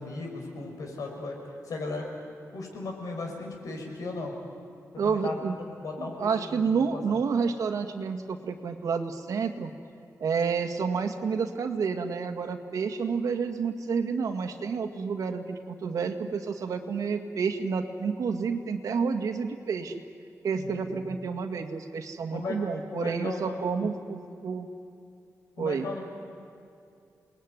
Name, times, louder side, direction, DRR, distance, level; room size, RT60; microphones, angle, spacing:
voice 1, 0.0-1.4 1.6-2.0 2.5-4.3 4.9-5.4 5.8-7.2 20.5-21.4 22.3-22.6 22.9-23.9 25.6-26.0, left 3 dB, 85° left, 1 dB, 5.9 m, -36 dB
voice 2, 5.0-5.6 6.0-9.7 10.2-20.0 20.4-24.7 25.6-25.9, right 5 dB, 80° right, 6 dB, 1.9 m, -29 dB
28.5 x 20.5 x 9.5 m, 2.5 s
wide cardioid pair, 155°, 6 cm